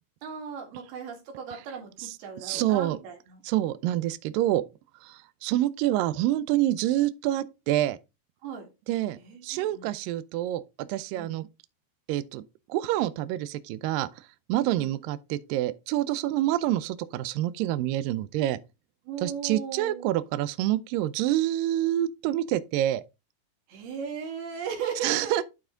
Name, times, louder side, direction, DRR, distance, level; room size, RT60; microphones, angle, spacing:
voice 1, 0.2-3.4 8.4-8.7 9.1-10.0 11.1-11.4 14.8-14.9 19.1-20.1 23.7-25.4, right 6 dB, 70° right, 3.9 m, -37 dB
voice 2, 2.4-3.0 3.4-4.6 5.0-8.0 8.9-9.2 9.4-11.5 12.1-12.4 12.7-14.1 14.5-18.6 19.2-23.0 25.0-25.4, right 14 dB, 90° right, 2.0 m, -27 dB
11.5 x 4.2 x 3.8 m
omnidirectional pair, 4.7 m